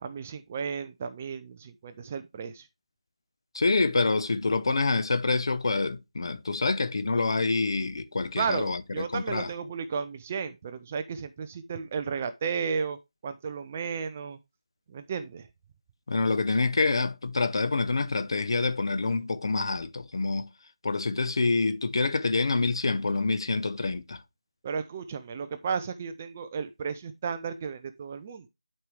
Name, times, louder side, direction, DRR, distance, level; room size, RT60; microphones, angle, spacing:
voice 1, 0.0-2.7 8.4-13.0 13.2-14.4 14.9-15.5 24.6-28.5, right 6 dB, 15° right, 0.4 m, -33 dB
voice 2, 3.5-9.5 16.1-20.5 20.8-24.2, left 3 dB, 45° left, 1.0 m, -27 dB
11.0 x 4.7 x 3.3 m
figure-of-eight pair, 170°, 3 cm